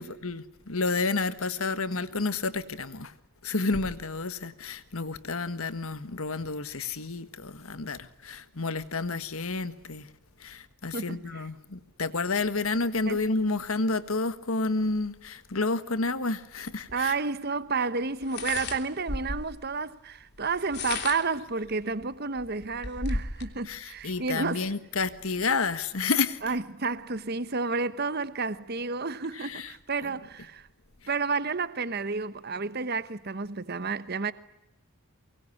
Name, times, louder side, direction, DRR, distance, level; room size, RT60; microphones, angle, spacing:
voice 1, 0.0-3.1 3.4-10.1 10.4-17.1 23.7-26.4 29.4-29.7, left 3 dB, 75° left, 1.6 m, -30 dB
voice 2, 10.9-11.5 13.0-13.2 16.9-24.6 26.4-30.7 31.1-34.3, right 4 dB, 45° right, 1.1 m, -31 dB
sound 1, 16.9-17.0 18.2-19.6 20.5-21.4 22.0-22.1 22.4-23.5, left 3 dB, 50° left, 3.3 m, -34 dB
23.5 x 22.5 x 9.7 m
head